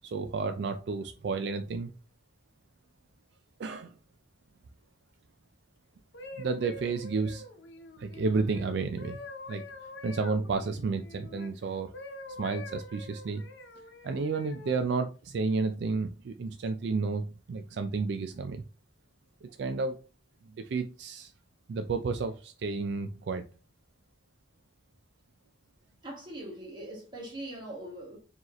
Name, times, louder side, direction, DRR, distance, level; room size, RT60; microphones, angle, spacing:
voice 1, 0.0-1.9 3.6-3.9 6.4-7.4 8.0-9.2 9.5-9.6 10.0-11.9 12.4-13.4 14.0-18.6 19.4-20.0 20.6-21.3 21.7-23.4, right 4 dB, 65° right, 0.4 m, -31 dB
sound 1, 5.9-11.5 11.9-14.8 15.5-15.7, left 2 dB, 80° left, 0.8 m, -46 dB
voice 2, 26.0-28.2, right 1 dB, 25° right, 1.7 m, -41 dB
4.5 x 3.0 x 3.0 m
head